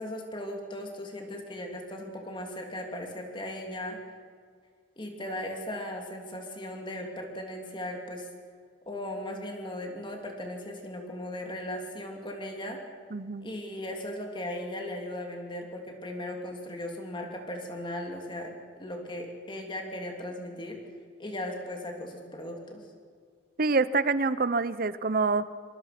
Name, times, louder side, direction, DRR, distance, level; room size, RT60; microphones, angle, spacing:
voice 1, 0.0-4.0 5.0-8.3 8.8-12.8 13.4-20.8 21.2-22.9, left 1 dB, 25° left, 2 dB, 2.9 m, -37 dB
voice 2, 13.1-13.5 23.6-25.5, right 4 dB, 50° right, 15 dB, 0.8 m, -26 dB
26.0 x 24.0 x 6.0 m, 2.1 s
head